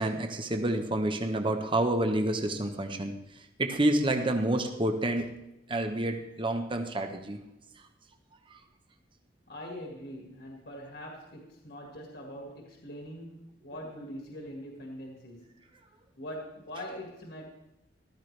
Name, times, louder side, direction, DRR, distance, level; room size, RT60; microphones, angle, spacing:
voice 1, 0.0-3.1 3.6-5.3 5.7-7.4, right 1 dB, 30° right, 5 dB, 1.0 m, -28 dB
voice 2, 9.5-15.7 16.2-17.5, equal, 65° left, 0 dB, 1.9 m, -43 dB
14.5 x 13.0 x 3.3 m, 0.91 s
head